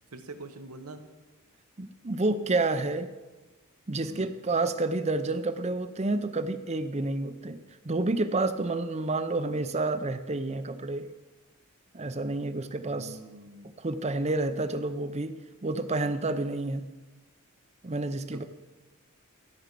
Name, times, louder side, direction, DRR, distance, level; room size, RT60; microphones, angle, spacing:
voice 1, 0.1-1.0 4.0-4.3 12.9-13.7 18.3-18.4, right 2 dB, 80° right, 6 dB, 1.1 m, -44 dB
voice 2, 1.8-3.1 3.9-7.6 7.8-11.1 11.9-13.2 13.8-15.3 15.6-16.8 17.8-18.4, right 2 dB, 30° right, 11 dB, 0.6 m, -29 dB
13.5 x 5.4 x 7.5 m, 1.2 s
head